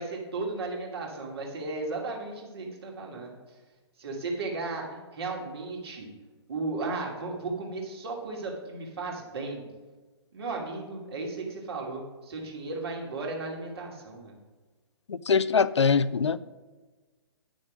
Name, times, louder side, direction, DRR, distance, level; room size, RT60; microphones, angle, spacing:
voice 1, 0.0-3.4 4.0-6.1 6.5-9.6 10.3-14.4, right 3 dB, 60° right, 2.7 m, -35 dB
voice 2, 15.1-16.4, left 5 dB, 80° left, 0.4 m, -23 dB
9.8 x 6.3 x 5.0 m
figure-of-eight pair, 125°, 15 cm